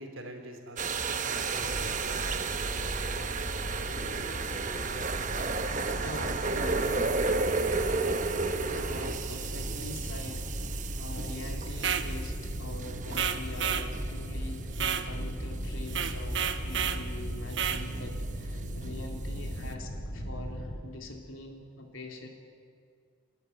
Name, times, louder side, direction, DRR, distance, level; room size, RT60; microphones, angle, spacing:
voice 1, 0.0-2.2, right 1 dB, 80° right, 3 dB, 3.7 m, -45 dB
sound 1, 0.8-19.8, right 3 dB, 40° right, 1.0 m, -34 dB
sound 2, 1.6-20.8, equal, 40° left, 6.0 m, -38 dB
voice 2, 6.0-7.3 8.7-22.3, left 1 dB, 80° left, 2 dB, 3.4 m, -44 dB
sound 3, 11.7-12.1 13.1-13.9 14.7-15.1 15.9-17.0 17.5-17.8, right 8 dB, 60° right, 1.1 m, -31 dB
29.5 x 13.0 x 9.3 m, 2.3 s
head